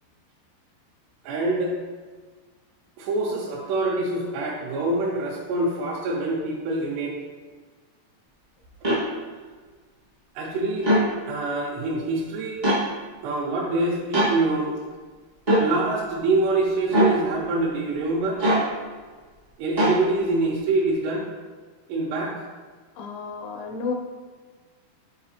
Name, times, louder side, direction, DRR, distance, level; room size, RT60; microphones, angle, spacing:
voice 1, 1.2-1.8 3.0-7.2 8.8-9.0 10.4-10.9 11.3-12.6 13.2-14.8 15.6-18.4 19.6-21.3 21.9-22.5, right 2 dB, 85° right, -3 dB, 2.9 m, -25 dB
sound 1, 8.8-9.0 10.8-11.0 12.6-12.8 14.1-14.3 15.5-15.7 16.9-17.1 18.4-18.7 19.8-20.0, right 1 dB, 45° right, 0.5 m, -20 dB
voice 2, 23.0-23.9, left 5 dB, 80° left, 1 dB, 1.9 m, -31 dB
8.9 x 4.8 x 2.9 m, 1.5 s
omnidirectional pair, 4.7 m